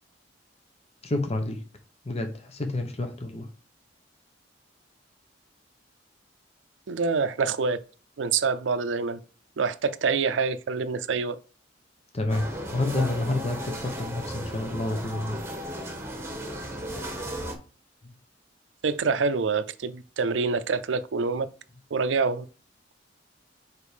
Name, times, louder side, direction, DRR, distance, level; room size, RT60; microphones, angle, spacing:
voice 1, 1.0-1.6 2.0-3.5 12.1-15.4, left 2 dB, 35° left, 0.9 m, -29 dB
voice 2, 6.9-7.8 8.2-9.2 9.6-11.4 18.8-21.5 21.9-22.5, right 4 dB, 85° right, 0.5 m, -26 dB
sound 1, 12.3-17.5, equal, 15° right, 1.4 m, -35 dB
5.1 x 4.7 x 5.0 m
head